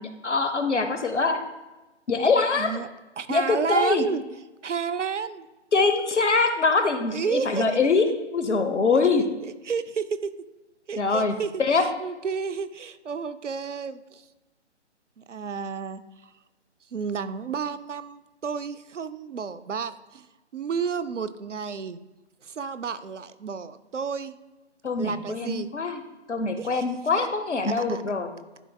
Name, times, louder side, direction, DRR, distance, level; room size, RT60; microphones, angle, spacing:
voice 1, 0.0-1.4 2.1-2.8 3.3-4.0 5.7-8.1 8.3-9.2 11.0-11.8 24.8-26.0 26.3-28.3, left 4 dB, 70° left, 7 dB, 1.0 m, -23 dB
voice 2, 2.5-2.9 3.2-4.2 4.6-5.5 7.1-7.7 9.4-10.3 10.9-14.2 15.2-16.0 16.9-20.3 20.5-22.0 22.4-24.4 25.0-25.7 26.6-26.8 27.2-27.3 27.6-28.0, right 6 dB, 80° right, 14 dB, 0.6 m, -31 dB
11.0 x 4.6 x 2.3 m, 1.1 s
figure-of-eight pair, 145°, 36 cm